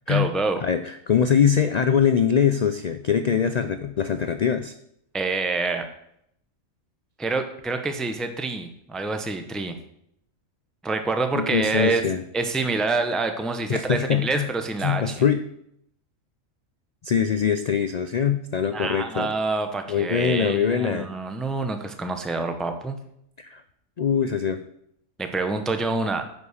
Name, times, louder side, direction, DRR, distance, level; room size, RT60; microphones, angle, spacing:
voice 1, 0.1-0.6 5.1-5.9 7.2-9.8 10.8-12.0 12.3-15.1 18.7-23.0 25.2-26.3, right 3 dB, ahead, 7 dB, 0.6 m, -27 dB
voice 2, 0.6-4.7 11.3-12.2 13.7-14.5 14.8-15.4 17.0-19.3 19.9-21.1 23.4-23.6 24.0-24.6, left 7 dB, 80° left, 9 dB, 0.3 m, -23 dB
9.7 x 5.4 x 6.4 m, 0.74 s
omnidirectional pair, 1.3 m